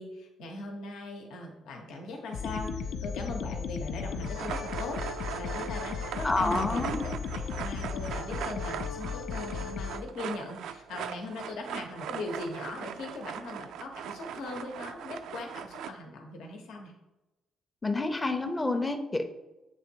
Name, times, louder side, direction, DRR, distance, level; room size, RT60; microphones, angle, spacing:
voice 1, 0.0-16.9, left 2 dB, 85° left, 2 dB, 0.9 m, -40 dB
sound 1, 2.3-10.0, left 5 dB, 70° left, 0.5 m, -35 dB
sound 2, 4.2-15.9, right 8 dB, 85° right, 0.3 m, -40 dB
voice 2, 6.2-7.0 17.8-19.2, left 2 dB, 20° left, 5 dB, 0.5 m, -28 dB
7.0 x 3.1 x 4.5 m, 1.0 s
cardioid pair, 90°, 0 cm